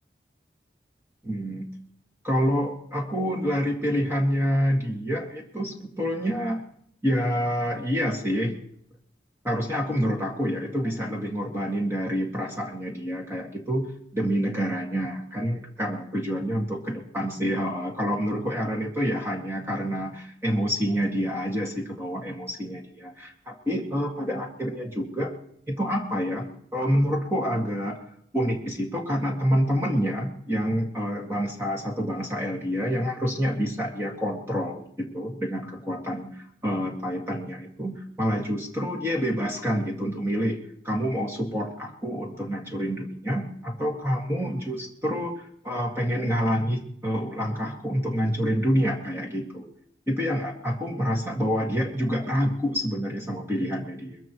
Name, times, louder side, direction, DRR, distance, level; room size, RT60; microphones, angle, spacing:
voice 1, 1.2-1.7 2.2-6.6 7.0-8.5 9.4-13.9 14.1-25.3 25.7-28.0 28.3-40.6 40.8-49.7 50.1-54.2, equal, 15° right, -1 dB, 2.0 m, -27 dB
22.0 x 15.0 x 3.1 m, 0.68 s
head